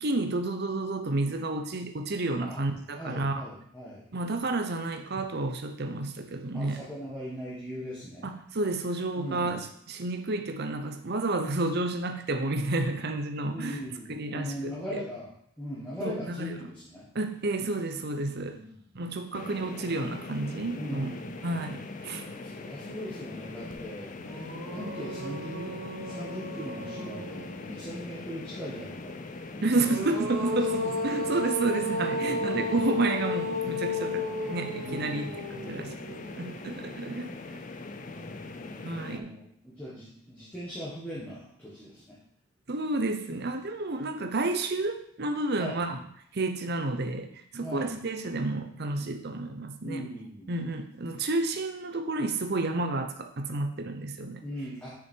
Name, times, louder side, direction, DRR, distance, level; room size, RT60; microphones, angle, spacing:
voice 1, 0.0-3.4 4.1-6.8 8.2-13.8 14.1-14.7 16.0-16.6 17.1-18.6 18.9-21.1 21.4-22.3 29.6-35.9 36.4-37.6 38.8-39.4 42.7-46.0 46.3-50.0 50.5-54.4, right 2 dB, 50° right, 6 dB, 0.7 m, -31 dB
voice 2, 2.9-4.0 6.5-8.3 9.2-9.7 13.5-17.1 18.4-18.7 20.8-21.6 22.2-25.7 26.0-29.2 29.8-30.3 32.2-32.7 34.8-36.6 38.1-42.2 45.6-45.8 47.6-47.9 49.8-50.6 54.4-54.9, equal, 5° left, -8 dB, 1.5 m, -40 dB
sound 1, 19.3-39.2, left 3 dB, 35° left, 0.5 m, -41 dB
sound 2, 23.7-23.8 24.2-27.9 29.5-36.8, left 2 dB, 65° right, 1.2 m, -34 dB
6.3 x 6.1 x 4.6 m, 0.69 s
head